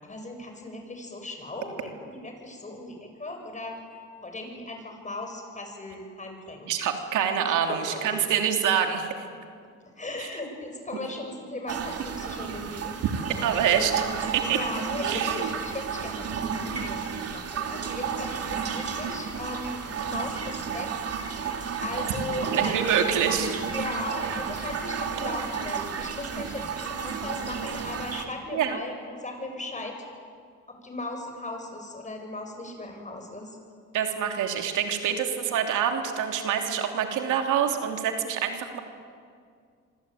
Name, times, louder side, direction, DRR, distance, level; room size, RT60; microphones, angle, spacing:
voice 1, 0.0-3.8 4.2-6.7 7.5-8.4 9.9-13.0 14.5-21.1 21.8-23.0 23.7-30.0 30.7-33.6, left 2 dB, 25° left, 4 dB, 7.8 m, -37 dB
voice 2, 6.7-9.1 13.4-13.9 14.3-14.6 15.0-15.5 22.5-23.6 28.5-28.8 33.9-38.8, right 8 dB, 85° right, 4 dB, 3.1 m, -26 dB
sound 1, 11.7-28.2, right 6 dB, 55° right, 3.2 m, -32 dB
25.5 x 24.5 x 9.3 m, 2.1 s
cardioid pair, 90°, 30 cm